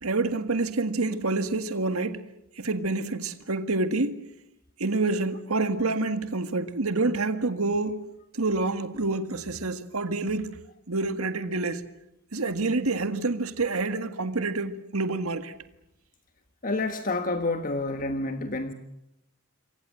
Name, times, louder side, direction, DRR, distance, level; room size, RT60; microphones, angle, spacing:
voice 1, 0.0-2.2 2.6-4.2 4.8-8.0 8.3-10.6 10.9-11.8 12.3-15.5, right 3 dB, 90° right, 1.7 m, -27 dB
voice 2, 16.6-18.7, left 2 dB, 40° left, 1.5 m, -28 dB
28.0 x 23.5 x 7.6 m
head